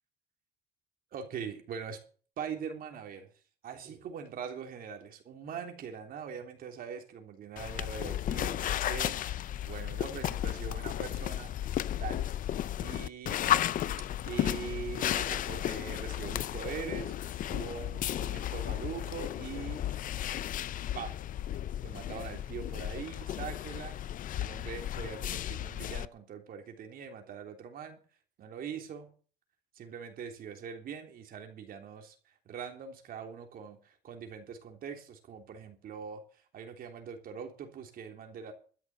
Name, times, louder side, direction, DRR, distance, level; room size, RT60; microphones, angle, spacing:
voice 1, 1.1-2.0 2.4-3.3 3.6-9.2 9.6-11.5 12.0-12.3 12.8-13.4 14.2-17.1 17.5-19.9 20.9-21.2 21.8-24.0 24.4-28.0 28.4-29.1 29.7-32.2 32.4-36.2 36.5-38.5, right 7 dB, 60° right, 3.4 m, -42 dB
sound 1, 7.6-26.1, left 12 dB, 55° left, 0.6 m, -34 dB
13.0 x 6.7 x 9.3 m
cardioid pair, 110°, 17 cm